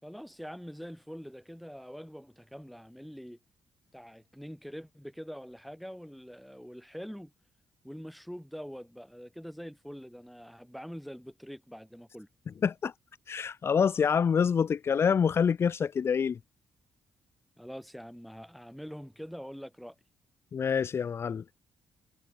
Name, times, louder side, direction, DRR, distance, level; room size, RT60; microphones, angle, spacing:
voice 1, 0.0-3.4 3.9-7.3 7.8-12.3 17.6-19.9, equal, ahead, 4.5 m, -44 dB
voice 2, 12.6-12.9 13.3-16.4 20.5-21.4, left 7 dB, 45° left, 1.9 m, -26 dB
cardioid pair, 110°, 6 cm